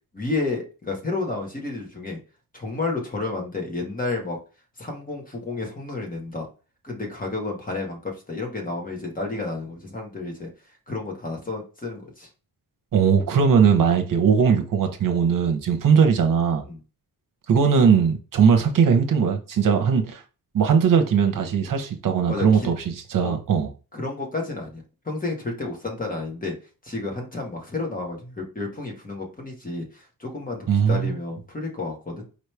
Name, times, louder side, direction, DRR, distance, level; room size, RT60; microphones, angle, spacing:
voice 1, 0.1-2.2 2.5-4.4 4.8-6.5 6.8-10.5 10.9-12.3 16.6-16.8 22.3-22.7 23.2-23.3 23.9-26.5 26.8-32.2, left 3 dB, 25° left, 1.6 m, -31 dB
voice 2, 12.9-16.6 17.5-20.2 20.5-23.7 30.7-31.2, right 6 dB, 65° right, 0.9 m, -19 dB
4.9 x 3.2 x 3.3 m
wide cardioid pair, 110°, 35 cm